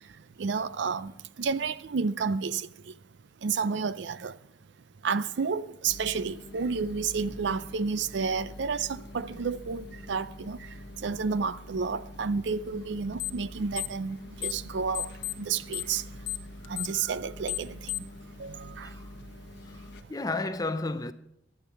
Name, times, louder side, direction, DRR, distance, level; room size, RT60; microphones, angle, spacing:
voice 1, 0.4-1.1 1.4-2.7 3.4-4.4 5.0-10.7 11.0-15.1 15.4-16.0 16.7-17.9 18.4-18.9, right 5 dB, 60° right, 0.4 m, -31 dB
sound 1, 5.9-20.0, left 1 dB, 55° left, 1.0 m, -46 dB
sound 2, 13.2-13.5 13.7-14.7 14.9-18.2, left 16 dB, 80° left, 0.6 m, -34 dB
voice 2, 19.7-21.1, left 2 dB, 20° left, 0.6 m, -33 dB
15.5 x 11.0 x 4.5 m
head